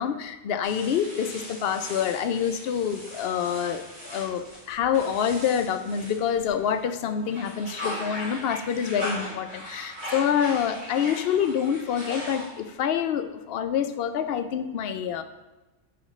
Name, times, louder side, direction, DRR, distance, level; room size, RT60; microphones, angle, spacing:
voice 1, 0.0-15.2, left 8 dB, 60° left, 9 dB, 0.7 m, -27 dB
sound 1, 0.6-6.8 7.2-12.8, equal, 70° right, 3.0 m, -39 dB
9.2 x 5.0 x 3.1 m, 1.1 s
omnidirectional pair, 1.3 m